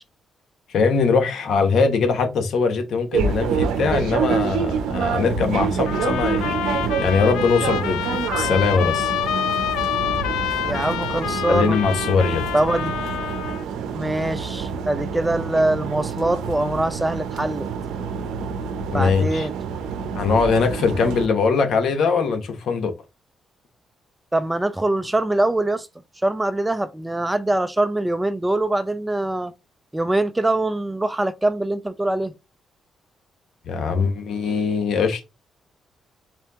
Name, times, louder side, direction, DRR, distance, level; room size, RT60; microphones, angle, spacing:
voice 1, 0.7-6.6 7.0-9.1 11.5-12.4 18.9-19.5 20.1-22.9 33.7-35.2, left 5 dB, 70° left, 1.1 m, -21 dB
sound 1, 3.1-21.3, right 6 dB, 85° right, 0.6 m, -27 dB
sound 2, 5.9-13.6, left 10 dB, 90° left, 0.3 m, -27 dB
voice 2, 10.6-11.8 12.5-12.9 13.9-17.7 18.9-19.5 24.3-25.9 26.2-29.5 29.9-32.3, right 1 dB, 15° right, 0.5 m, -23 dB
4.3 x 2.8 x 3.5 m
cardioid pair, 70°, 0 cm